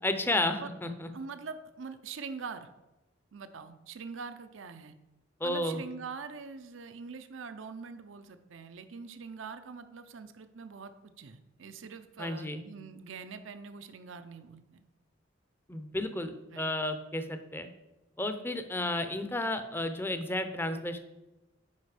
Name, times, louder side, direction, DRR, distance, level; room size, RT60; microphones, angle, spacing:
voice 1, 0.0-1.1 5.4-5.8 12.2-12.6 15.7-17.7 18.2-21.0, left 1 dB, 10° left, 9 dB, 0.6 m, -32 dB
voice 2, 1.1-2.7 3.3-4.9 5.4-14.9 16.5-16.7, right 5 dB, 75° right, 10 dB, 0.6 m, -43 dB
9.5 x 5.1 x 4.9 m, 1.0 s
head